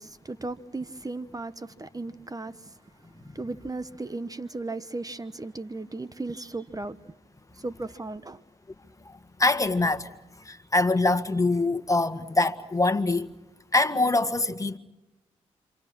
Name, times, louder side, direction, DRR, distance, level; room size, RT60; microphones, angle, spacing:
voice 1, 0.0-2.8 3.3-7.0 7.5-8.4, right 2 dB, 25° right, 1.1 m, -36 dB
voice 2, 9.1-10.1 10.4-13.3 13.7-14.8, left 2 dB, 25° left, 1.8 m, -24 dB
28.5 x 27.0 x 6.2 m
supercardioid pair, 45°, 14 cm